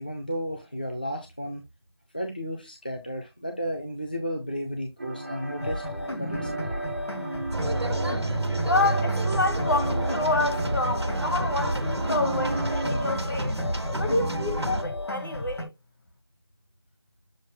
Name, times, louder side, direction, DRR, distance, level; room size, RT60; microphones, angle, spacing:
voice 1, 0.0-1.6 2.1-5.8 6.2-7.0, equal, 20° left, 0.5 m, -33 dB
sound 1, 5.0-13.2, right 2 dB, 35° right, 1.1 m, -35 dB
sound 2, 5.6-15.7, left 1 dB, 80° left, 2.3 m, -33 dB
sound 3, 7.5-14.8, right 2 dB, 80° right, 1.4 m, -29 dB
voice 2, 8.6-13.5 14.0-15.7, left 2 dB, 50° left, 1.5 m, -28 dB
7.1 x 5.7 x 2.3 m
figure-of-eight pair, 170°, 14 cm